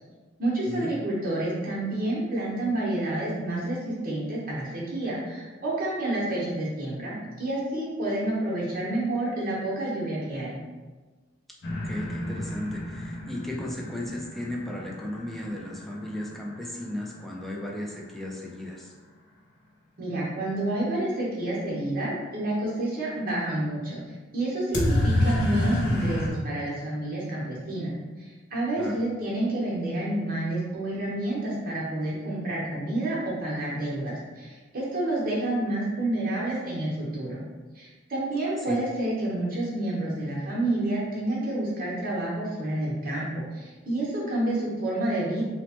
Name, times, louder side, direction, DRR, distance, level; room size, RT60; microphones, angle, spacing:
voice 1, 0.4-10.6 20.0-24.0 24.3-37.4 37.7-45.4, right 1 dB, 45° right, -5 dB, 0.9 m, -29 dB
sound 1, 11.6-17.4 24.7-26.3, left 1 dB, 60° left, 0.5 m, -29 dB
voice 2, 11.8-18.9 28.7-29.0 38.6-38.8, left 1 dB, ahead, -2 dB, 0.3 m, -35 dB
3.0 x 2.1 x 2.8 m, 1.3 s
head